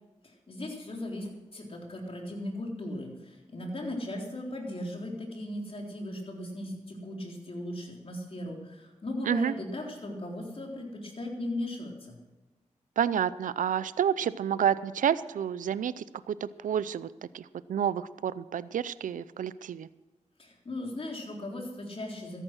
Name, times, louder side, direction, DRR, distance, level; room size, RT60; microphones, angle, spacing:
voice 1, 0.2-12.2 20.4-22.4, left 1 dB, 45° left, 0 dB, 3.8 m, -37 dB
voice 2, 13.0-17.1 17.3-19.9, right 9 dB, 85° right, 17 dB, 0.5 m, -29 dB
14.0 x 11.0 x 6.3 m, 1.1 s
cardioid pair, 65°, 13 cm